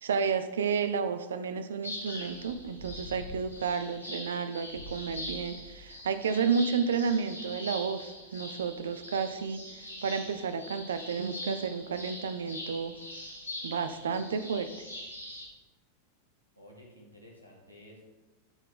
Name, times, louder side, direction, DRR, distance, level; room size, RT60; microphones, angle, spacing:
voice 1, 0.0-12.9 13.6-14.7, right 6 dB, 65° right, 11 dB, 0.5 m, -31 dB
sound 1, 1.8-15.5, left 1 dB, 85° left, 1.6 m, -43 dB
voice 2, 16.6-18.0, left 1 dB, 90° right, -1 dB, 1.9 m, -53 dB
12.0 x 4.4 x 3.9 m, 1.2 s
figure-of-eight pair, 90°, 0 cm